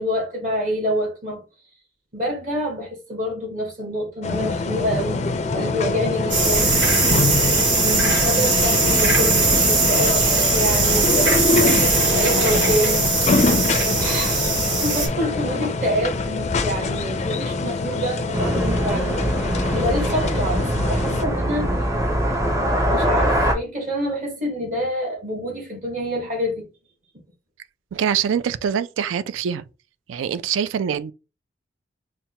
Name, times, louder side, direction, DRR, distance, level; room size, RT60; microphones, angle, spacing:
voice 1, 0.0-1.4 2.1-6.8 7.8-9.4 9.6-10.2 10.5-13.3 14.0-19.2 19.7-21.7 22.9-26.7, equal, 40° right, 1.0 m, -27 dB
sound 1, 4.2-21.2, left 3 dB, 35° left, 0.4 m, -24 dB
sound 2, 6.3-15.1, right 3 dB, 65° right, 1.9 m, -20 dB
sound 3, 18.3-23.5, equal, 15° right, 0.6 m, -22 dB
voice 2, 27.9-29.6 30.1-31.1, right 8 dB, 80° right, 0.3 m, -24 dB
5.8 x 2.1 x 2.8 m
head